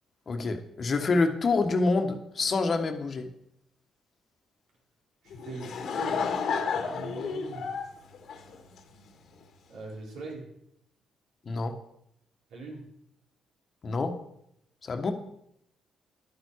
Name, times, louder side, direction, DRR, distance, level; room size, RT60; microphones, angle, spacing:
voice 1, 0.3-3.3 11.4-11.7 13.8-14.1 14.8-15.1, left 3 dB, 45° left, 6 dB, 1.5 m, -27 dB
voice 2, 5.2-6.2 6.8-7.6 9.7-10.5 12.5-12.8, right 3 dB, 85° right, -2 dB, 4.3 m, -41 dB
Laughter / Crowd, 5.3-9.1, left 5 dB, 70° left, 1.8 m, -31 dB
11.5 x 9.7 x 4.8 m, 0.75 s
cardioid pair, 90°, 0 cm